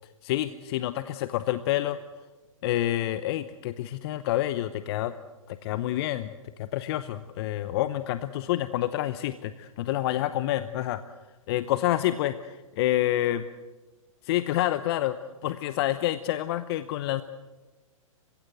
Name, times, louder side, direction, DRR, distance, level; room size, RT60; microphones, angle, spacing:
voice 1, 0.2-2.0 2.6-5.1 5.5-6.3 6.6-11.0 11.5-13.4 14.2-15.2 15.4-17.2, left 14 dB, 45° left, 13 dB, 0.9 m, -28 dB
29.0 x 16.0 x 8.0 m, 1.3 s
hypercardioid pair, 125°, 18 cm